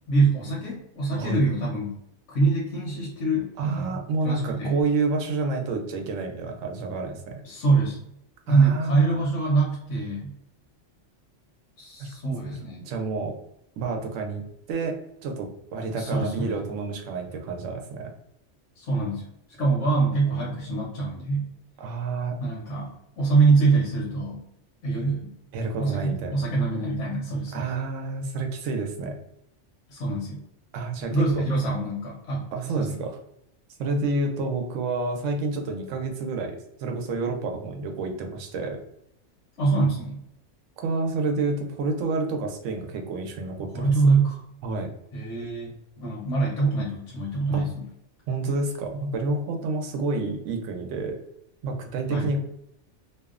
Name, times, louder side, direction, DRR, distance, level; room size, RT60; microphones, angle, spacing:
voice 1, 0.1-2.0 2.3-4.8 7.4-8.0 8.5-10.3 11.8-12.9 16.0-16.6 18.8-19.3 19.6-21.5 22.4-24.5 24.8-25.3 25.8-27.7 29.9-30.4 31.1-32.5 32.7-33.0 39.6-40.2 43.7-44.4 45.1-45.7 46.0-47.8 52.1-52.3, right 3 dB, 75° left, -5 dB, 1.0 m, -24 dB
voice 2, 3.6-7.4 8.5-9.3 12.0-12.1 12.4-13.3 13.8-14.4 14.7-15.0 15.2-18.1 21.8-22.4 25.5-26.4 27.5-29.1 30.7-31.4 32.5-33.1 33.8-38.8 40.8-43.9 44.6-44.9 47.5-47.7 48.3-51.2 51.6-52.4, right 3 dB, 85° right, 3 dB, 0.9 m, -29 dB
2.7 x 2.0 x 2.3 m, 0.78 s
omnidirectional pair, 1.2 m